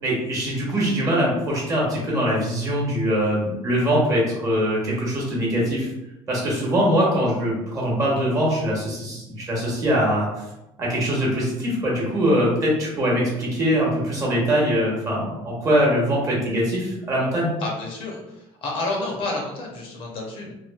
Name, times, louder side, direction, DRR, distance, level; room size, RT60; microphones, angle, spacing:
voice 1, 0.0-5.9 6.3-10.3 10.8-17.5, equal, 30° right, -4 dB, 1.0 m, -22 dB
voice 2, 17.6-20.5, left 2 dB, 50° left, -1 dB, 0.7 m, -30 dB
3.0 x 2.3 x 2.3 m, 0.90 s
cardioid pair, 150°, 11 cm